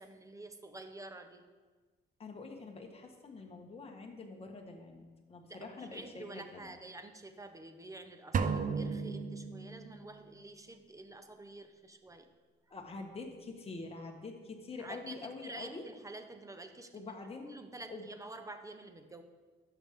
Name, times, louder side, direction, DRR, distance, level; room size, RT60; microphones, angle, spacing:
voice 1, 0.0-1.5 5.5-12.3 14.8-16.9 17.5-19.2, right 2 dB, 15° right, 8 dB, 0.8 m, -49 dB
voice 2, 2.2-6.7 12.7-15.8 16.9-17.5 17.9-18.1, left 3 dB, 30° left, 2 dB, 1.4 m, -46 dB
sound 1, 8.3-10.1, right 5 dB, 40° right, 0.6 m, -34 dB
13.0 x 6.0 x 3.7 m, 1.4 s
cardioid pair, 90°, 20 cm